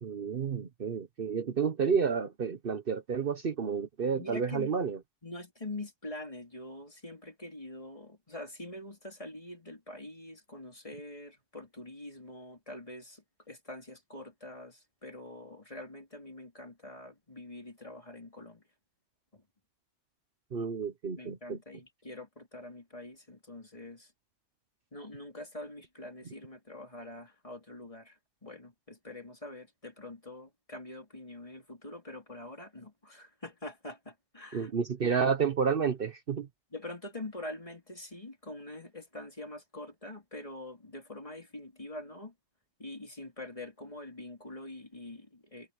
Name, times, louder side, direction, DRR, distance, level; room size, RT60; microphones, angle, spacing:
voice 1, 0.0-5.0 20.5-21.6 34.5-36.5, right 6 dB, 55° right, 1.1 m, -30 dB
voice 2, 4.1-4.7 5.2-18.6 19.3-19.4 21.2-24.1 24.9-34.7 36.7-42.3 42.8-45.7, left 1 dB, 30° left, 3.6 m, -45 dB
omnidirectional pair, 1.2 m